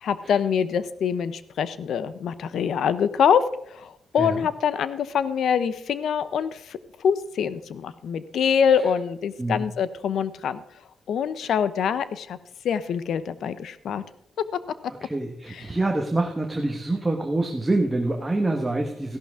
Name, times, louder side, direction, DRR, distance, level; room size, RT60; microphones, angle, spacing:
voice 1, 0.0-3.4 3.7-10.6 11.1-12.4 12.6-14.0 15.5-15.6, left 7 dB, 70° left, 14 dB, 0.7 m, -25 dB
voice 2, 15.0-19.2, right 2 dB, 10° right, 2 dB, 1.2 m, -26 dB
15.0 x 11.5 x 3.6 m, 0.75 s
wide cardioid pair, 155°, 0 cm